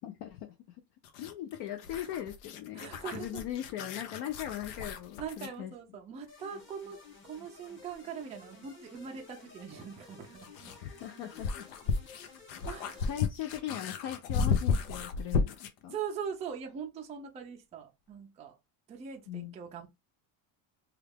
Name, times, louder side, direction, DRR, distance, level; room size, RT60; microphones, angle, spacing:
voice 1, 0.0-0.8 1.2-5.7 10.8-11.7 13.1-16.0 19.3-19.5, left 11 dB, 55° left, 0.6 m, -39 dB
sound 1, 1.0-5.6 7.9-8.0 10.0-15.8, left 5 dB, 80° left, 0.8 m, -34 dB
voice 2, 2.7-3.4 5.2-7.0 7.2-10.7 12.7-13.1 15.9-18.6 18.9-19.9, right 7 dB, 15° right, 0.3 m, -41 dB
sound 2, 6.3-13.1, left 4 dB, 25° left, 1.1 m, -54 dB
3.2 x 2.4 x 3.3 m
cardioid pair, 140°, 50 cm